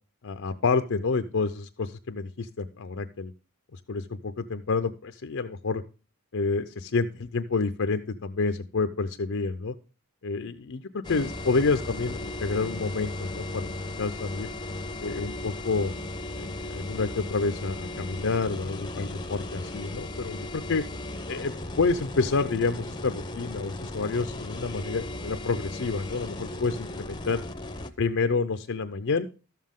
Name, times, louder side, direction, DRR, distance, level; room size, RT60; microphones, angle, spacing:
voice 1, 0.2-3.3 3.7-5.8 6.3-9.7 10.2-14.5 15.0-15.9 16.4-20.8 21.3-27.4 28.0-29.3, left 4 dB, 60° left, 8 dB, 0.5 m, -29 dB
sound 1, 11.0-27.9, left 2 dB, 20° left, 0.7 m, -36 dB
12.5 x 7.4 x 3.6 m, 0.34 s
head